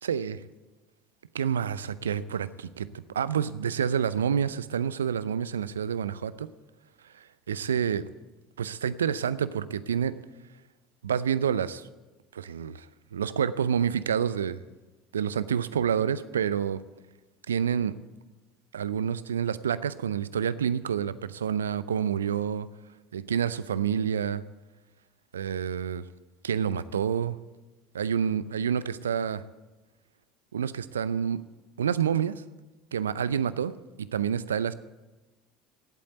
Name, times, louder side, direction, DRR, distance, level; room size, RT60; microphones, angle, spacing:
voice 1, 0.0-0.4 1.3-6.5 7.0-8.0 8.6-10.1 11.0-11.9 12.3-12.9 13.1-14.6 15.1-16.8 17.5-18.0 18.7-22.7 23.1-24.4 25.3-26.0 26.4-27.4 27.9-29.4 30.5-31.4 31.8-32.3 32.9-33.7 34.0-34.7, right 8 dB, 80° right, 16 dB, 0.5 m, -28 dB
17.0 x 8.5 x 8.0 m, 1.1 s
figure-of-eight pair, 65°, 0 cm